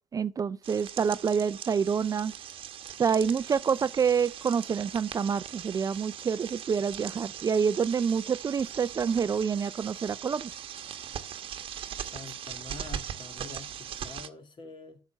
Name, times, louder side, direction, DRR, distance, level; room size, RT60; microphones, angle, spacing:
voice 1, 0.1-2.3 3.0-10.5, right 6 dB, 30° right, 0.4 m, -27 dB
sound 1, 0.6-14.3, right 9 dB, 50° right, 1.0 m, -40 dB
voice 2, 12.0-15.0, left 4 dB, 40° left, 2.3 m, -46 dB
7.9 x 6.6 x 7.2 m
hypercardioid pair, 65°, 12 cm